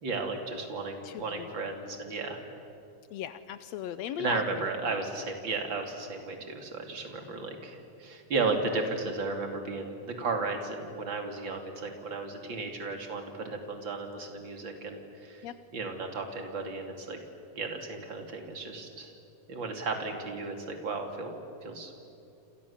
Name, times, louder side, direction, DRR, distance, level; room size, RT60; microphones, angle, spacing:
voice 1, 0.0-2.5 4.2-15.5 15.7-17.2 17.5-19.1 19.5-21.9, right 3 dB, 35° right, 4 dB, 3.3 m, -34 dB
voice 2, 1.0-1.6 3.1-4.7 15.4-15.5, left 10 dB, 85° left, 12 dB, 1.5 m, -38 dB
28.5 x 28.0 x 7.3 m, 2.8 s
omnidirectional pair, 4.0 m